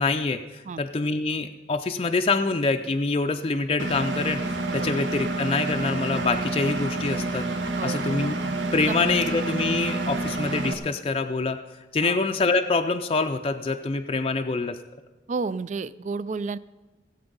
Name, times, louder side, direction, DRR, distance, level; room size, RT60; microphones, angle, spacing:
voice 1, 0.0-4.4 4.7-7.5 7.8-8.4 8.7-11.6 11.9-14.8, left 3 dB, 30° left, 5 dB, 0.4 m, -25 dB
Engine, 3.8-10.7, right 2 dB, 75° right, 1.3 m, -28 dB
voice 2, 7.8-8.2 8.8-8.9 12.0-12.2 15.3-16.6, right 4 dB, 40° right, 18 dB, 0.3 m, -31 dB
17.5 x 8.0 x 5.4 m, 1.2 s
head